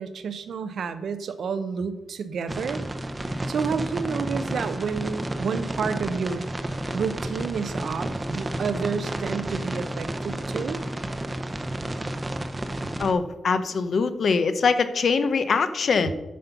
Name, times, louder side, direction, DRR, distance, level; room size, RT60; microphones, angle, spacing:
voice 1, 0.0-2.8 3.5-6.4 6.9-10.8, right 6 dB, 65° right, 11 dB, 0.7 m, -30 dB
sound 1, 2.5-13.1, right 1 dB, 20° right, 0.7 m, -31 dB
voice 2, 13.0-16.1, left 5 dB, 55° left, 10 dB, 0.7 m, -23 dB
9.4 x 5.4 x 5.8 m, 1.0 s
wide cardioid pair, 145°, 0 cm